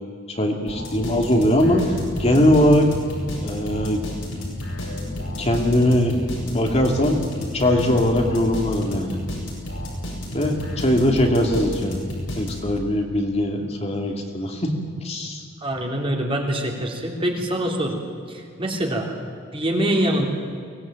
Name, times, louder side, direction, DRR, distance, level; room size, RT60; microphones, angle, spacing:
voice 1, 0.4-1.8 2.2-2.9 3.4-4.0 5.4-7.2 7.5-9.2 10.3-12.0 12.4-14.7 15.0-15.4, left 1 dB, 30° left, 2 dB, 2.6 m, -20 dB
sound 1, 0.7-12.9, left 1 dB, 90° left, 7.8 m, -31 dB
voice 2, 15.6-18.0 18.3-19.2 19.5-20.2, right 1 dB, 30° right, 1 dB, 3.3 m, -24 dB
23.5 x 18.0 x 9.0 m, 2.2 s
head